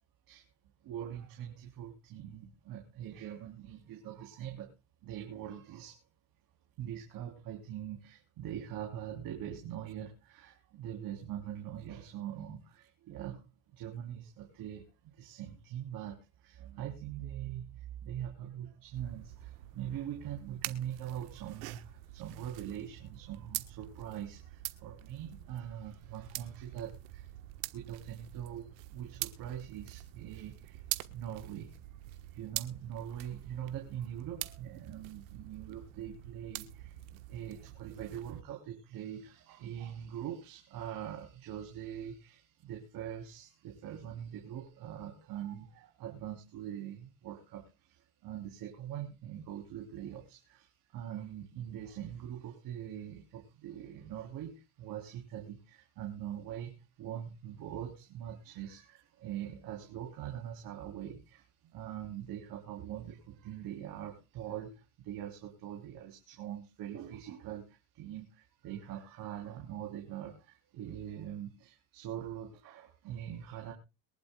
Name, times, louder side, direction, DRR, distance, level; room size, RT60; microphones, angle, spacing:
voice 1, 0.8-4.7 5.0-6.0 6.8-27.5 27.7-31.7 32.1-73.7, right 10 dB, 55° right, 1 dB, 3.6 m, -43 dB
sound 1, 19.0-38.4, right 17 dB, 90° right, 1.4 m, -45 dB
23.0 x 11.0 x 2.3 m, 0.30 s
cardioid pair, 130°, 40 cm